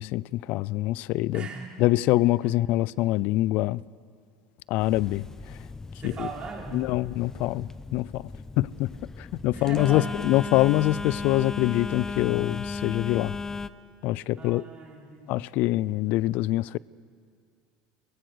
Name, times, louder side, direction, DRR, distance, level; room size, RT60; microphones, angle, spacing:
voice 1, 0.0-1.5 1.8-3.8 4.7-5.6 6.0-6.3 6.7-8.2 8.6-8.9 9.2-13.3 14.0-14.6 15.3-16.8, left 17 dB, 65° left, 0.5 m, -25 dB
voice 2, 1.3-1.7 6.0-6.8 9.5-10.1 14.4-15.3, right 4 dB, 35° right, 5.6 m, -38 dB
Telephone, 4.8-13.7, left 3 dB, 15° left, 0.7 m, -36 dB
23.0 x 21.5 x 6.4 m
supercardioid pair, 90°, 3 cm